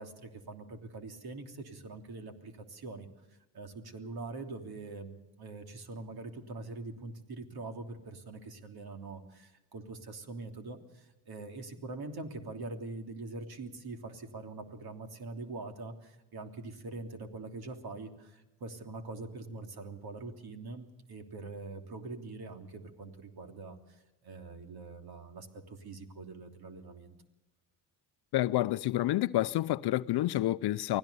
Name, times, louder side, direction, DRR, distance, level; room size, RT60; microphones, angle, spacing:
voice 1, 0.0-3.1 3.5-24.0 24.2-27.2, right 3 dB, 50° right, 3.3 m, -43 dB
voice 2, 28.3-31.0, left 15 dB, 55° left, 0.7 m, -29 dB
24.5 x 16.5 x 6.9 m
supercardioid pair, 65°, 46 cm